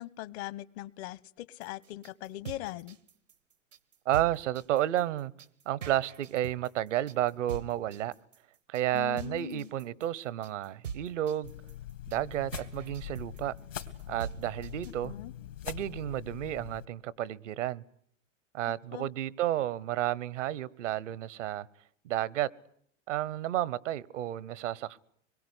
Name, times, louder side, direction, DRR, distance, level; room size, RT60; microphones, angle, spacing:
voice 1, 0.0-3.0 8.9-9.7 15.0-15.3 18.7-19.1, left 15 dB, 60° left, 20 dB, 1.1 m, -40 dB
sound 1, 1.6-15.1, right 7 dB, 90° right, 1.7 m, -44 dB
voice 2, 4.0-5.3 5.6-8.1 8.7-11.5 12.1-13.5 14.1-15.1 15.6-17.8 18.5-21.7 22.0-22.5 23.1-25.0, right 13 dB, 75° right, 24 dB, 1.1 m, -31 dB
sound 2, 11.4-16.9, left 11 dB, 85° left, 3.1 m, -43 dB
26.0 x 22.0 x 9.9 m, 0.68 s
hypercardioid pair, 90°, 37 cm